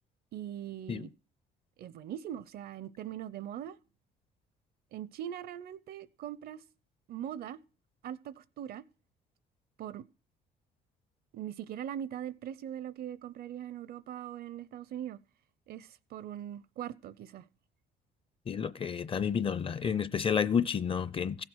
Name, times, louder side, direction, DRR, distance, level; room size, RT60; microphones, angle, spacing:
voice 1, 0.3-1.1 1.8-3.8 4.9-6.6 7.1-7.6 8.0-8.8 9.8-10.0 11.3-15.2 15.7-17.5, right 10 dB, 65° right, 0.7 m, -41 dB
voice 2, 18.5-21.4, left 7 dB, 30° left, 0.6 m, -30 dB
15.5 x 7.5 x 6.2 m
cardioid pair, 110°, 17 cm